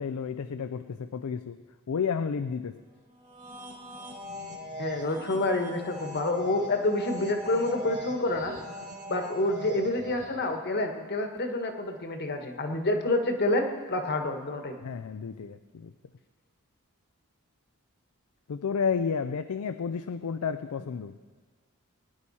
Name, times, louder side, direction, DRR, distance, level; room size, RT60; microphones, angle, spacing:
voice 1, 0.0-1.6 1.9-2.8 14.8-15.9 18.5-21.2, left 6 dB, 85° left, 11 dB, 0.4 m, -31 dB
sound 1, 3.2-10.5, equal, 35° right, 1.8 m, -41 dB
voice 2, 4.8-8.5 9.1-14.8, left 2 dB, 50° left, 5 dB, 1.4 m, -28 dB
22.5 x 10.0 x 4.2 m, 1.4 s
head